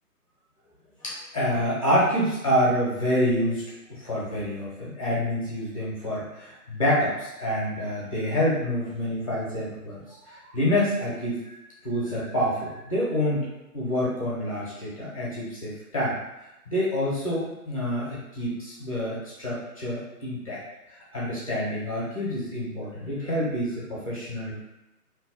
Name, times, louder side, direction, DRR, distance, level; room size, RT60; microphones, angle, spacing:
voice 1, 1.0-3.6 3.9-11.5 11.8-13.5 13.7-16.2 16.7-20.6 20.9-24.5, equal, 25° left, -7 dB, 0.5 m, -27 dB
2.7 x 2.0 x 3.7 m, 0.94 s
figure-of-eight pair, 150°, 47 cm